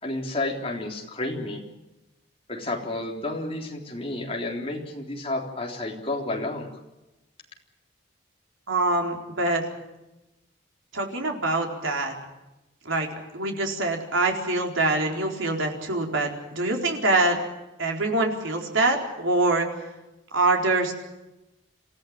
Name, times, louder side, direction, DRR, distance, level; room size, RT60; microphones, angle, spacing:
voice 1, 0.0-1.6 2.5-6.7, left 2 dB, 30° left, 0 dB, 3.7 m, -31 dB
voice 2, 8.7-9.6 10.9-12.1 12.8-13.1 13.3-17.4 17.8-19.7 20.3-20.9, right 2 dB, 80° right, 1 dB, 4.3 m, -24 dB
27.0 x 15.5 x 8.8 m, 1.0 s
head